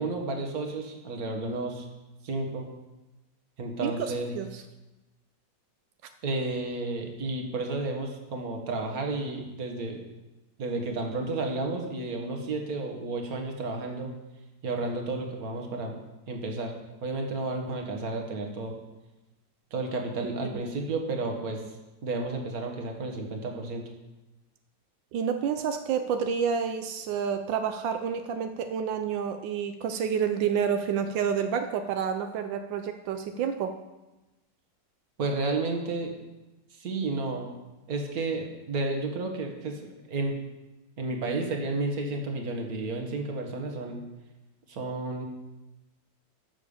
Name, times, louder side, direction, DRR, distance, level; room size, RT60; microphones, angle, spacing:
voice 1, 0.0-1.9 2.2-2.7 3.6-4.3 6.2-10.0 10.6-14.1 14.6-16.0 16.3-16.7 17.0-18.8 19.7-21.6 22.0-23.8 35.2-36.1 36.7-37.5 37.9-40.3 41.0-44.0 44.7-45.2, right 2 dB, 55° right, 2 dB, 2.0 m, -32 dB
voice 2, 3.8-4.6 25.1-33.7, right 7 dB, 90° right, 7 dB, 1.4 m, -29 dB
9.9 x 7.2 x 7.0 m, 1.0 s
omnidirectional pair, 2.0 m